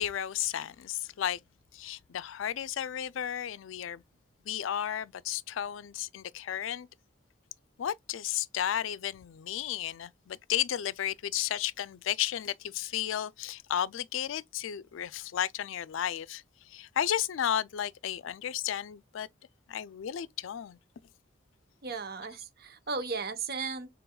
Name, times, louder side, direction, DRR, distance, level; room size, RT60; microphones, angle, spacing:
voice 1, 0.0-1.4 1.7-4.0 4.5-6.9 7.8-19.3 19.7-20.8, left 10 dB, 90° left, 0.4 m, -33 dB
voice 2, 21.8-23.9, right 4 dB, 50° right, 0.9 m, -35 dB
6.9 x 3.4 x 2.3 m
head